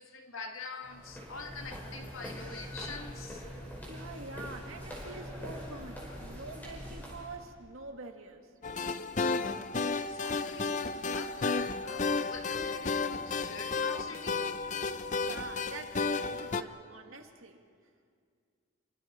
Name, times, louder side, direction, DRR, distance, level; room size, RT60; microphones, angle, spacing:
voice 1, 0.0-3.5 10.0-10.8 11.1-14.5, left 4 dB, 80° left, 4 dB, 1.9 m, -45 dB
sound 1, 0.8-7.4, equal, 10° left, 5.1 m, -43 dB
voice 2, 3.9-8.5 14.8-15.0 15.3-17.6, right 3 dB, 80° right, 4 dB, 1.9 m, -46 dB
sound 2, 8.6-16.6, left 4 dB, 35° left, 0.5 m, -32 dB
29.0 x 24.0 x 4.4 m, 2.1 s
head